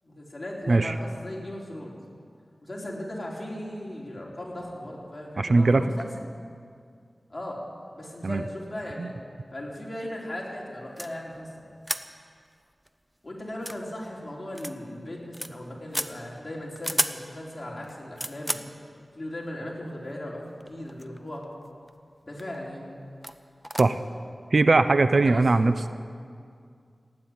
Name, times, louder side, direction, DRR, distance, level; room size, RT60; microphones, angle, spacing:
voice 1, 0.0-1.9 2.6-6.1 7.3-7.6 8.0-9.1 9.5-11.7 13.2-18.6 19.1-21.5 22.2-22.9 25.1-25.5, left 1 dB, 35° left, -3 dB, 4.0 m, -37 dB
voice 2, 5.4-5.9 8.2-8.4 9.0-9.1 23.8-24.0 24.5-25.9, right 3 dB, 65° right, 11 dB, 0.6 m, -20 dB
sound 1, 11.0-11.1 11.8-12.1 12.5-12.6 12.9-13.0 13.5-13.8 14.6-14.7 15.1-15.5 15.9-16.1 16.8-17.2 17.8-18.7 19.7-19.8 20.6-21.2 21.4-21.9 22.4-22.6 23.2-23.4 23.6-23.8, equal, 5° right, 0.7 m, -31 dB
16.5 x 9.9 x 8.8 m, 2.2 s
wide cardioid pair, 55°, 0 cm